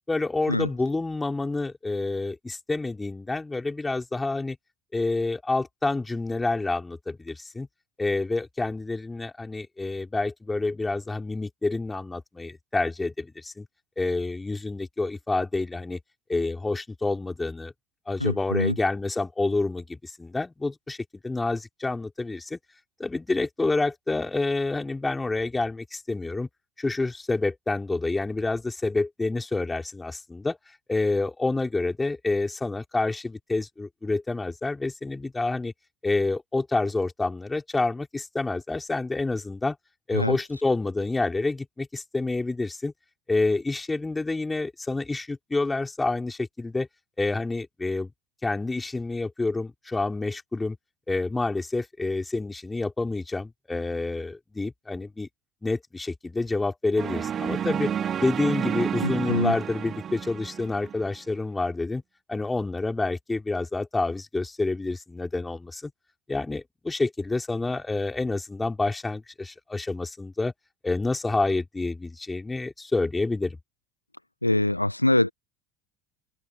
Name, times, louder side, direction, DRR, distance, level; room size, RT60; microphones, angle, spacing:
voice 1, 0.1-4.6 4.9-7.7 8.0-13.7 14.0-16.0 16.3-17.7 18.1-21.0 21.2-22.6 23.0-26.5 26.8-30.6 30.9-35.7 36.0-39.8 40.1-42.9 43.3-46.9 47.2-48.1 48.4-50.8 51.1-55.3 55.6-62.0 62.3-65.9 66.3-70.5 70.8-73.6, left 3 dB, 10° left, 4.2 m, -28 dB
voice 2, 18.2-18.8 40.1-40.4 59.0-59.5 74.4-75.3, left 1 dB, 90° left, 0.6 m, -24 dB
sound 1, 57.0-61.2, right 8 dB, 35° right, 2.3 m, -30 dB
figure-of-eight pair, 70°, 0 cm